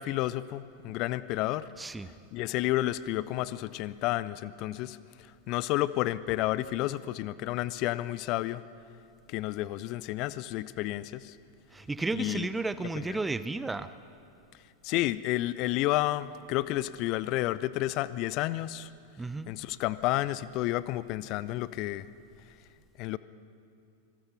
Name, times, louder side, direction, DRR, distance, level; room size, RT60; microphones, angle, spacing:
voice 1, 0.0-1.7 2.3-5.0 5.5-8.6 9.3-11.4 12.2-12.5 13.1-13.2 14.8-18.9 19.5-22.1 23.0-23.2, left 16 dB, 40° left, 17 dB, 0.6 m, -31 dB
voice 2, 1.8-2.1 11.7-13.9 19.2-19.5, right 3 dB, 10° right, 14 dB, 0.6 m, -33 dB
26.0 x 20.0 x 5.7 m, 2.5 s
figure-of-eight pair, 90°, 0 cm